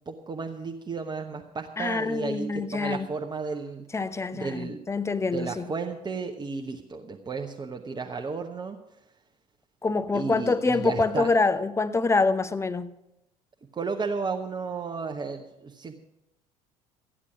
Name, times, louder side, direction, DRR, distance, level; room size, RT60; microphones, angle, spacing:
voice 1, 0.1-3.9 4.3-4.8 5.2-8.8 10.1-11.3 13.7-15.9, right 4 dB, 20° right, 1.0 m, -33 dB
voice 2, 1.8-3.1 3.9-5.6 9.8-12.9, left 3 dB, 15° left, 0.8 m, -26 dB
13.5 x 9.9 x 6.0 m
figure-of-eight pair, 60°, 20 cm